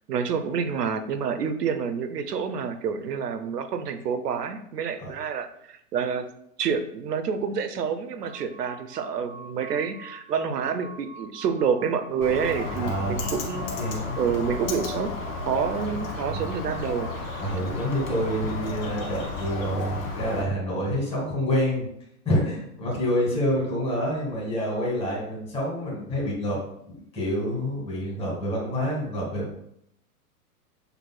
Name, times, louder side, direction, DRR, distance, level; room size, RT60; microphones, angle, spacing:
voice 1, 0.1-6.3 6.6-13.7 14.2-15.1 15.5-17.4, right 6 dB, 90° right, 9 dB, 0.7 m, -28 dB
sound 1, 8.3-18.4, right 3 dB, 20° right, 1.2 m, -45 dB
Bird, 12.2-20.4, left 3 dB, 60° left, 1.2 m, -33 dB
voice 2, 12.7-13.3 13.8-14.2 16.2-16.5 17.4-21.9 22.2-29.6, equal, 10° left, -5 dB, 1.7 m, -27 dB
6.5 x 3.1 x 2.2 m, 0.73 s
hypercardioid pair, 120°, 47 cm